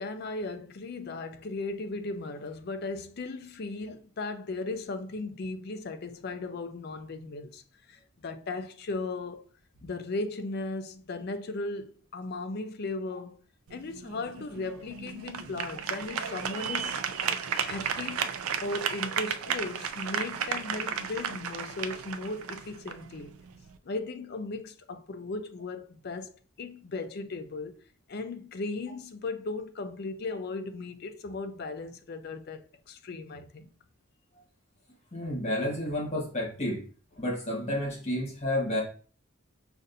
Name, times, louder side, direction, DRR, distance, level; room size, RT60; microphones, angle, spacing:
voice 1, 0.0-7.6 7.9-9.4 9.8-13.4 13.7-17.0 17.7-18.3 18.6-23.4 23.8-26.3 26.6-27.8 28.1-33.7, left 3 dB, 50° left, 0.4 m, -37 dB
sound 1, 13.7-23.8, right 7 dB, 85° right, 0.4 m, -34 dB
voice 2, 35.1-36.8 37.2-38.8, left 1 dB, 30° left, 1.3 m, -30 dB
5.3 x 2.5 x 2.6 m
head